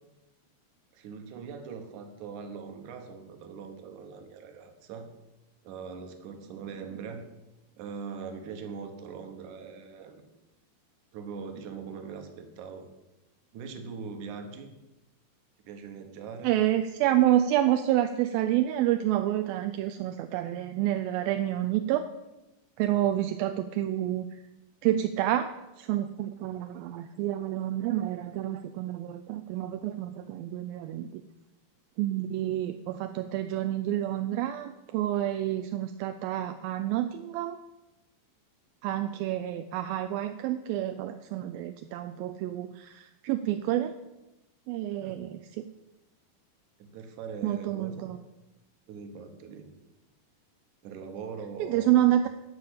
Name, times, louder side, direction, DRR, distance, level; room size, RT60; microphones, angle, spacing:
voice 1, 0.9-5.1 5.6-7.2 7.8-10.2 11.1-12.9 13.5-14.7 15.6-16.5 22.9-23.0 45.0-45.3 46.8-48.1 48.9-49.7 50.8-52.1, right 5 dB, 65° right, 6 dB, 2.4 m, -41 dB
voice 2, 16.4-22.1 22.8-24.4 24.8-31.2 32.0-37.6 38.8-43.9 44.7-45.6 47.4-48.2 51.6-52.3, right 13 dB, 80° right, 8 dB, 2.3 m, -28 dB
12.5 x 5.2 x 8.5 m, 0.99 s
omnidirectional pair, 4.3 m